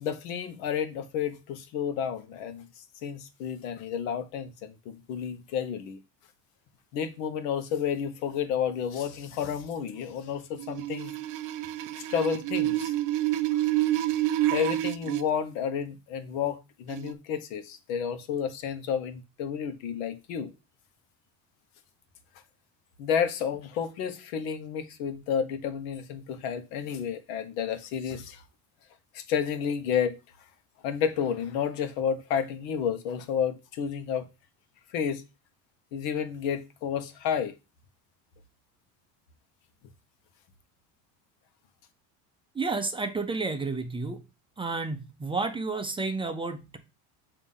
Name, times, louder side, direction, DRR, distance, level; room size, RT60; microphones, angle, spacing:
voice 1, 0.0-2.7 3.0-6.0 6.9-11.1 12.0-12.9 13.5-13.7 14.5-20.5 23.0-28.4 29.1-30.2 30.8-34.3 34.9-35.2 35.9-37.5, left 7 dB, 90° left, 1.1 m, -31 dB
sound 1, 10.6-15.2 16.9-17.1, right 15 dB, 50° right, 0.6 m, -28 dB
voice 2, 42.6-44.2 44.6-46.8, right 3 dB, 15° right, 0.6 m, -31 dB
6.7 x 2.9 x 5.5 m
cardioid pair, 130°, 40 cm